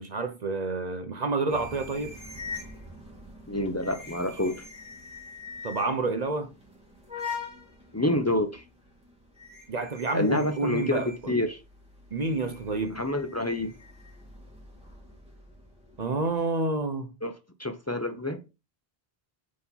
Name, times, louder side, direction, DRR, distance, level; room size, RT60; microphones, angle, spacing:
voice 1, 0.0-2.2 5.6-6.5 9.7-11.4 12.1-13.0 16.0-17.1, right 3 dB, 45° right, 0.7 m, -29 dB
sound 1, 1.5-16.3, left 4 dB, 5° right, 2.2 m, -44 dB
voice 2, 3.5-4.7 7.9-8.6 10.1-11.6 12.9-13.7 17.2-17.3 17.6-18.4, left 1 dB, 20° left, 0.5 m, -28 dB
4.7 x 4.1 x 5.4 m
omnidirectional pair, 1.1 m